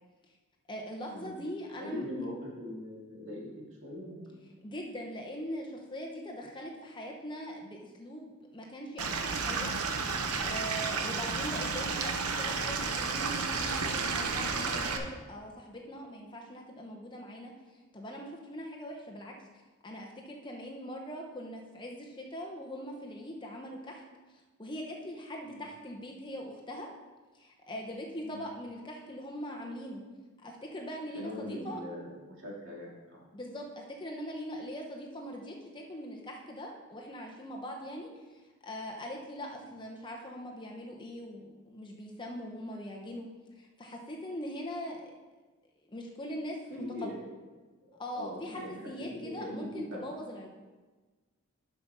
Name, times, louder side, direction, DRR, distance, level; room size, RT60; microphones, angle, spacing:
voice 1, 0.7-2.0 4.6-9.7 10.4-19.3 19.8-24.0 24.3-26.9 27.3-30.0 30.4-31.8 33.3-43.3 43.5-45.1 45.8-47.1 48.0-50.5, equal, 20° left, 0 dB, 0.8 m, -41 dB
voice 2, 1.8-3.5 3.8-4.4 25.4-25.6 28.2-28.4 31.1-33.2 46.8-47.3 47.9-50.0, left 1 dB, 55° right, -4 dB, 2.4 m, -41 dB
Stream / Liquid, 9.0-15.0, right 4 dB, 90° right, 0.8 m, -32 dB
7.2 x 6.0 x 5.5 m, 1.3 s
head